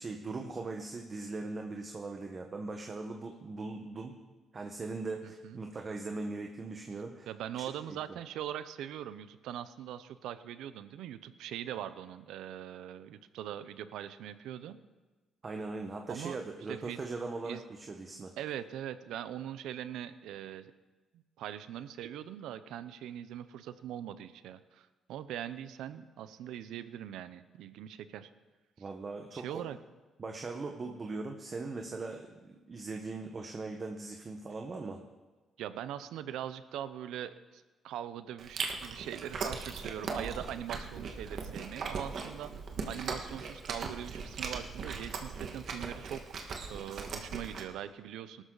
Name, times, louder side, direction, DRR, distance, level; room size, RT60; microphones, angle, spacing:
voice 1, 0.0-4.2 4.5-7.3 7.5-7.6 7.9-8.0 15.4-18.3 28.8-29.6 30.2-35.0, right 3 dB, 35° right, 3 dB, 1.3 m, -40 dB
voice 2, 5.2-5.6 7.3-14.8 16.1-16.4 16.7-17.0 17.4-17.6 18.4-20.7 21.4-28.3 29.3-29.8 35.6-42.5 42.9-46.4 46.7-48.4, right 10 dB, 85° right, 13 dB, 0.7 m, -41 dB
Chewing mastication, 38.4-47.6, right 5 dB, 60° right, 1.8 m, -39 dB
19.0 x 12.5 x 4.0 m, 1.2 s
cardioid pair, 90°, 0 cm